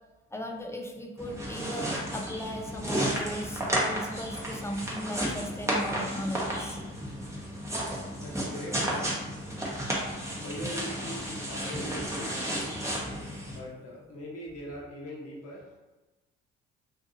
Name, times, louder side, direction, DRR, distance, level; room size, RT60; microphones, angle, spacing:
voice 1, 0.3-3.6 3.9-6.8, equal, 10° left, 1 dB, 0.4 m, -37 dB
sound 1, 1.2-13.6, right 1 dB, 10° right, 0.9 m, -33 dB
voice 2, 8.2-9.1 10.3-12.8 13.5-15.8, equal, 50° left, -4 dB, 0.8 m, -41 dB
2.6 x 2.4 x 2.6 m, 1.1 s
hypercardioid pair, 45°, 32 cm